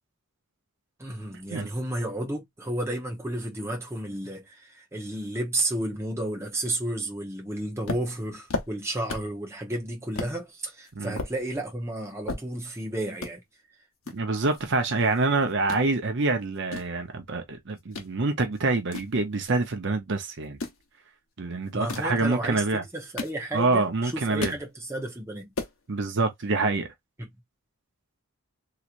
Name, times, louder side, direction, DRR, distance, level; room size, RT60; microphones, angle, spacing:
voice 1, 1.0-13.4 21.7-22.6 22.9-25.5 27.2-27.3, right 1 dB, 10° right, 0.9 m, -32 dB
sound 1, 7.8-9.4 9.7-9.8 10.1-10.4 10.8-12.8 13.1-13.3 14.0-15.2 15.5-15.8 16.4-18.1 18.5-19.8 20.4-20.8 21.7-22.2 22.8-23.8 24.1-24.7 25.1-25.2 25.4-25.8, left 3 dB, 65° left, 1.0 m, -36 dB
voice 2, 14.1-20.6 21.4-22.8 23.5-24.5 25.9-26.9, right 3 dB, 55° right, 0.7 m, -26 dB
3.2 x 2.9 x 2.5 m
head